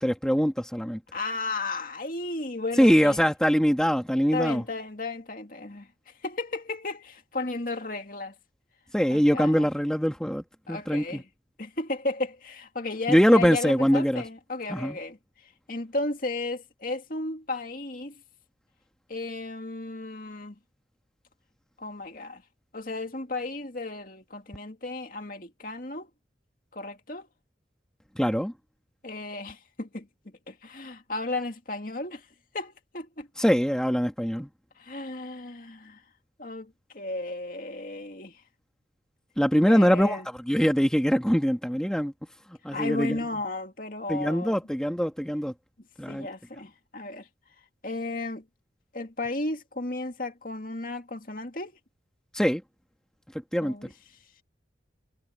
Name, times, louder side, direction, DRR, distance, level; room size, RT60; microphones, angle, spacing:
voice 1, 0.0-1.0 2.8-4.6 8.9-11.2 13.1-14.2 14.7-15.0 28.2-28.5 33.4-34.5 39.4-40.2 40.5-42.1 42.6-43.2 44.1-45.5 46.0-46.3 52.3-52.6 53.5-53.7, equal, 5° left, 1.8 m, -23 dB
voice 2, 1.1-3.2 4.3-5.9 6.2-8.3 9.1-9.7 10.7-11.3 11.6-15.2 15.7-18.2 19.1-20.6 21.8-22.4 22.7-26.1 26.7-27.3 29.0-30.1 30.5-32.3 32.5-33.3 34.8-36.0 36.4-38.4 39.7-40.3 42.7-44.6 46.1-47.3 47.8-48.4 48.9-51.7 53.6-53.9, left 2 dB, 50° left, 2.4 m, -34 dB
head